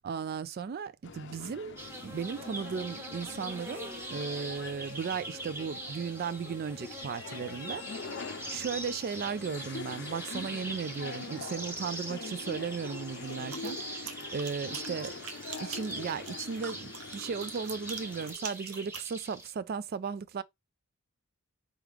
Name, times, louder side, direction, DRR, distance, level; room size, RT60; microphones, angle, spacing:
voice 1, 0.0-15.2 15.6-20.4, right 6 dB, 45° right, 0.3 m, -36 dB
sound 1, 1.0-18.3, left 4 dB, 50° left, 0.6 m, -44 dB
sound 2, 1.8-19.5, right 1 dB, 10° right, 1.0 m, -42 dB
sound 3, 13.3-19.1, right 6 dB, 75° right, 0.9 m, -44 dB
4.6 x 3.1 x 3.4 m
head